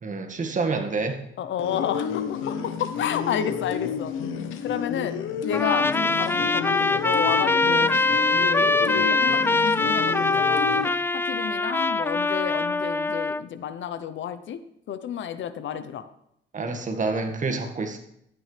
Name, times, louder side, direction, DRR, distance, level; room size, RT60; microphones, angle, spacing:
voice 1, 0.0-1.2 16.5-18.1, right 3 dB, 40° right, 5 dB, 1.8 m, -28 dB
voice 2, 1.4-4.1 4.6-5.2 5.4-8.0 8.4-10.7 11.1-14.6 14.9-16.1, left 9 dB, 70° left, 12 dB, 0.8 m, -31 dB
sound 1, 1.6-10.9, left 7 dB, 90° left, 1.1 m, -31 dB
Trumpet, 5.5-13.4, left 3 dB, 10° left, 0.4 m, -23 dB
12.0 x 9.5 x 3.4 m, 0.75 s
cardioid pair, 90°, 20 cm